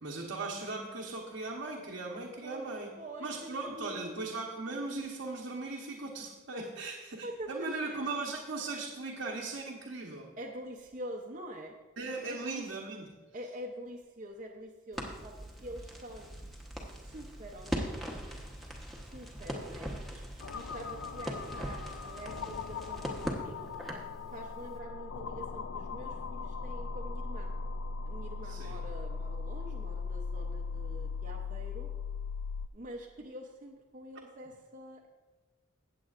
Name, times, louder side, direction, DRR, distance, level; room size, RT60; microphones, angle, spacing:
voice 1, 0.0-2.9 3.2-10.3 12.0-13.1 28.4-28.7, right 3 dB, 85° right, -2 dB, 1.1 m, -38 dB
voice 2, 2.4-4.3 6.8-6.9 7.2-8.0 10.4-11.7 12.2-12.6 13.3-15.3 15.6-16.3 16.8-18.3 19.0-20.2 20.5-23.7 24.3-27.5 28.0-31.9 32.7-35.1, equal, 40° right, -1 dB, 0.7 m, -45 dB
Crackle, 14.9-24.1, equal, ahead, 1.1 m, -40 dB
sound 1, 20.4-32.7, left 5 dB, 85° left, 0.4 m, -39 dB
16.5 x 7.7 x 2.5 m, 1.2 s
head